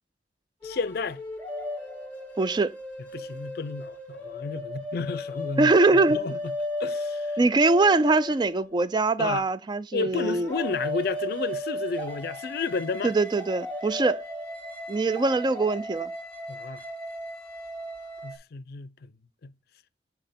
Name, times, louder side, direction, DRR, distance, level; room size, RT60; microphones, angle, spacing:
voice 1, 0.6-1.2 3.1-6.4 6.8-7.4 9.2-9.5 9.9-13.1 16.5-16.8 18.2-19.1 19.4-19.5, left 4 dB, 60° left, 0.5 m, -32 dB
sound 1, 0.6-9.0 10.1-18.4, left 1 dB, 10° left, 1.6 m, -35 dB
voice 2, 2.4-2.8 5.6-6.3 7.4-10.5 13.0-14.2 14.9-16.1, right 3 dB, 25° right, 0.3 m, -22 dB
7.9 x 4.5 x 3.5 m
head